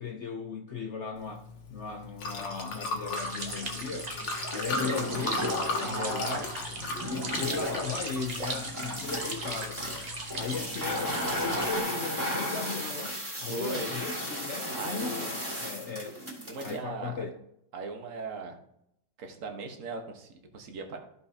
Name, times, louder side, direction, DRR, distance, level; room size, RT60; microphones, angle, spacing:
voice 1, 0.0-4.1 4.5-6.6 7.0-10.1 10.4-16.2 16.6-17.3, left 5 dB, 60° left, 2 dB, 0.7 m, -37 dB
Liquid, 1.1-11.7, left 3 dB, 85° left, 1.9 m, -38 dB
sound 1, 3.1-11.8, right 2 dB, 30° right, 1.0 m, -38 dB
sound 2, 4.7-6.0 6.4-16.8, equal, 10° right, 2.3 m, -35 dB
voice 2, 5.8-6.5 13.5-13.9 14.7-15.3 16.5-17.2 17.7-18.6 19.2-21.0, right 3 dB, 50° right, 3 dB, 1.4 m, -38 dB
14.0 x 5.6 x 2.8 m, 0.76 s
omnidirectional pair, 1.9 m